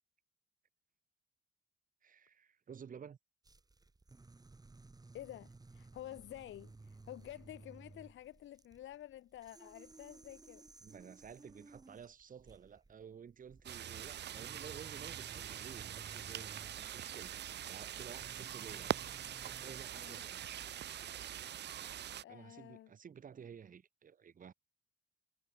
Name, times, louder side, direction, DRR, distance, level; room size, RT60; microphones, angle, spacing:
voice 1, 2.0-3.2 10.8-19.0 19.4-20.4 22.3-24.5, right 7 dB, 45° right, 1.4 m, -53 dB
sound 1, 3.4-19.8, right 3 dB, 20° right, 2.5 m, -58 dB
voice 2, 5.1-10.6 19.9-20.2 22.2-22.9, left 13 dB, 75° left, 2.1 m, -50 dB
sound 2, 13.6-22.2, right 11 dB, 60° right, 0.9 m, -43 dB
cardioid pair, 90°, 20 cm